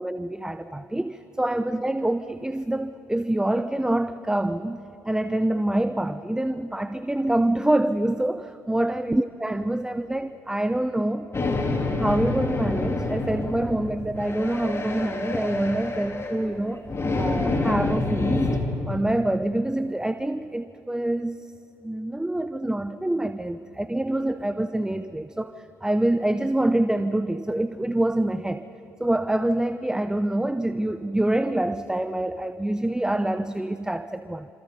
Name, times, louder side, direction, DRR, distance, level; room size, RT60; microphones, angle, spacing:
voice 1, 0.0-11.3 11.9-16.8 17.2-18.6 18.9-21.4 21.8-28.6 29.0-34.5, right 1 dB, 10° right, 11 dB, 0.8 m, -26 dB
sound 1, 11.3-18.6, left 2 dB, 30° left, 3.5 m, -27 dB
27.5 x 27.0 x 5.4 m, 2.9 s
figure-of-eight pair, 45°, 8 cm